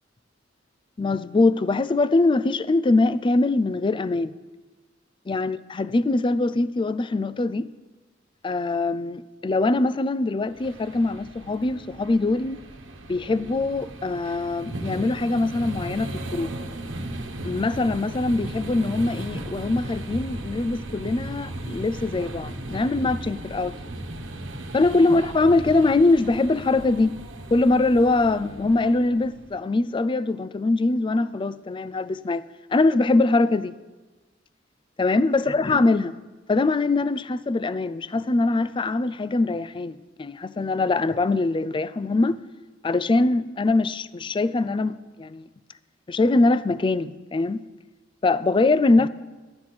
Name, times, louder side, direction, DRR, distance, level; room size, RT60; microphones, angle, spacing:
voice 1, 1.0-4.3 5.3-7.7 8.4-12.6 13.1-16.5 17.4-23.8 24.7-27.1 27.5-32.4 32.7-33.7 35.0-36.1 36.5-42.4 42.8-45.5 46.1-47.6 48.2-49.1, left 2 dB, 25° left, 0.4 m, -22 dB
sound 1, 10.5-29.5, right 1 dB, 75° right, 1.2 m, -36 dB
13.5 x 8.7 x 6.0 m
head